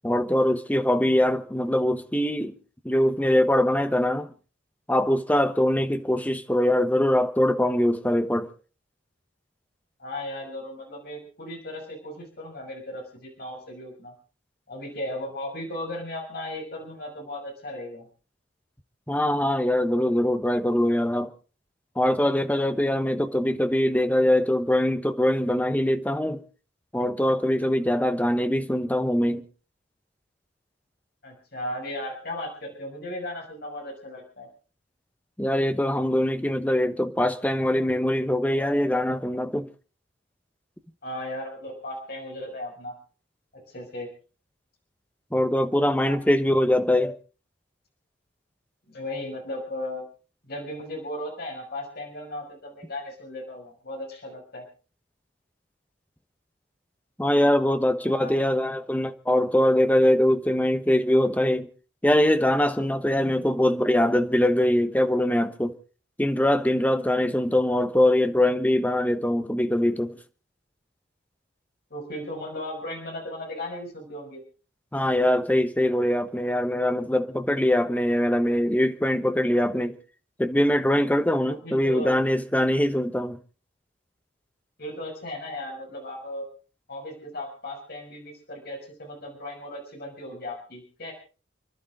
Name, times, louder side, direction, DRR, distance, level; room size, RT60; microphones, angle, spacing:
voice 1, 0.0-2.5 2.8-4.3 4.9-8.5 19.1-21.3 22.0-26.4 26.9-29.4 35.4-39.7 45.3-47.2 57.2-61.7 62.0-65.8 66.2-70.2 74.9-80.0 80.4-83.4, left 1 dB, 10° left, 1.1 m, -23 dB
voice 2, 10.0-14.1 14.7-18.1 31.2-34.5 41.0-42.9 43.5-44.1 46.0-46.2 48.9-50.0 50.4-54.6 58.0-58.3 58.6-58.7 71.9-74.4 81.5-82.2 84.8-86.5 86.9-91.1, left 1 dB, 55° left, 6.2 m, -36 dB
29.5 x 11.5 x 3.8 m
head